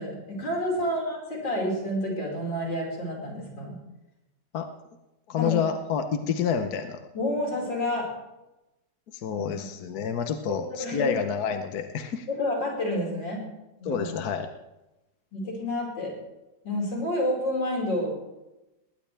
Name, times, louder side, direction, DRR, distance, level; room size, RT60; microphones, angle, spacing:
voice 1, 0.0-3.8 5.4-5.6 6.2-6.3 7.1-8.1 9.3-9.7 10.8-11.2 12.3-13.4 13.8-14.1 15.3-16.1 16.6-18.1, left 1 dB, 90° left, -2 dB, 5.8 m, -29 dB
voice 2, 5.3-7.0 9.1-12.3 13.8-14.5, left 7 dB, 65° left, 7 dB, 1.4 m, -28 dB
20.5 x 19.0 x 3.4 m, 0.98 s
omnidirectional pair, 1.9 m